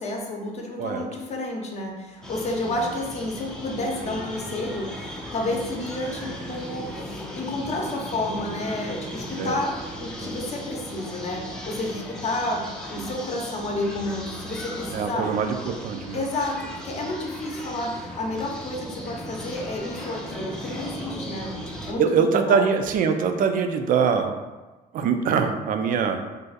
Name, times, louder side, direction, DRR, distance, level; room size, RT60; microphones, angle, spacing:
voice 1, 0.0-12.6 12.9-15.3 16.1-21.5 21.9-22.7, left 2 dB, 40° left, 0 dB, 0.7 m, -30 dB
sound 1, 2.2-21.9, equal, 5° left, 0.5 m, -37 dB
voice 2, 14.9-16.2 22.0-24.5 24.9-26.2, right 6 dB, 55° right, 6 dB, 0.4 m, -23 dB
2.5 x 2.4 x 3.9 m, 1.2 s
cardioid pair, 110°, 17 cm